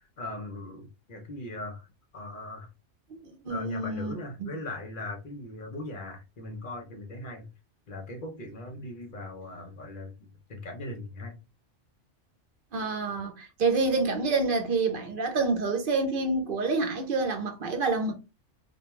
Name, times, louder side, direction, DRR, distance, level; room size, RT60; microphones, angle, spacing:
voice 1, 0.0-1.9 2.1-2.7 3.5-7.5 7.9-10.1 10.5-11.4, left 2 dB, 50° left, 0.7 m, -39 dB
voice 2, 3.4-4.1 4.4-4.5 12.7-18.1, right 3 dB, 55° right, 0.7 m, -27 dB
2.3 x 2.2 x 2.9 m
omnidirectional pair, 1.3 m